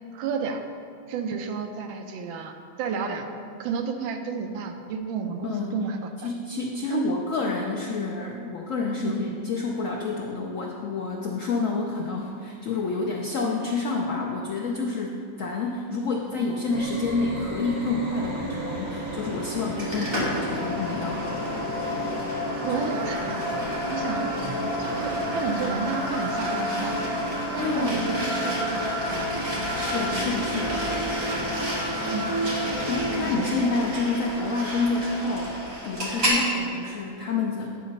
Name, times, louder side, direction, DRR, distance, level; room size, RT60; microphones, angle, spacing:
voice 1, 0.1-0.6 1.1-3.3 3.6-6.3 6.9-7.1 9.0-9.2 22.6-23.5 23.9-24.3 24.8-27.0 27.5-29.3 32.1-32.3 33.3-33.5, right 5 dB, 85° right, 5 dB, 1.4 m, -31 dB
voice 2, 5.4-5.8 6.2-21.3 22.7-22.8 27.6-28.0 29.9-30.9 32.9-35.6 35.8-37.8, left 3 dB, 75° left, -1 dB, 0.7 m, -28 dB
sound 1, 16.7-33.7, right 1 dB, 45° right, 0.3 m, -33 dB
sound 2, 19.8-36.4, equal, 30° right, 1.8 m, -30 dB
9.5 x 3.9 x 5.3 m, 2.4 s
omnidirectional pair, 2.1 m